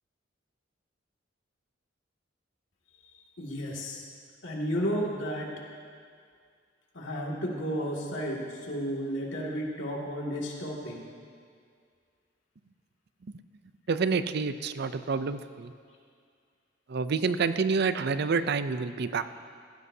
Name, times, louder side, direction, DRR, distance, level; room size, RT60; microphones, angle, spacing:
voice 1, 3.4-4.0 4.4-5.5 6.9-11.0, equal, 75° left, -3 dB, 2.3 m, -32 dB
voice 2, 13.9-15.7 16.9-19.2, right 4 dB, 60° right, 11 dB, 0.5 m, -28 dB
17.5 x 15.5 x 2.8 m, 2.2 s
head